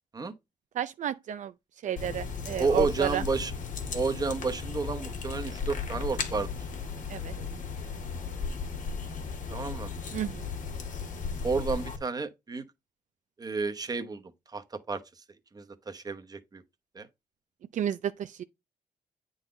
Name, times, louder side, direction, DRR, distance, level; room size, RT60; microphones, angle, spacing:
voice 1, 0.7-1.5 1.8-3.2 7.1-7.3 10.1-10.5 17.7-18.4, right 10 dB, 70° right, 0.5 m, -31 dB
sound 1, 2.0-12.0, left 5 dB, 70° left, 1.6 m, -35 dB
voice 2, 2.6-3.5 3.9-6.5 9.5-9.9 11.4-12.6 13.4-14.2 14.5-15.0 15.5-16.6 16.9-17.1, right 4 dB, 30° right, 1.0 m, -31 dB
9.0 x 4.0 x 3.8 m
cardioid pair, 115°, 13 cm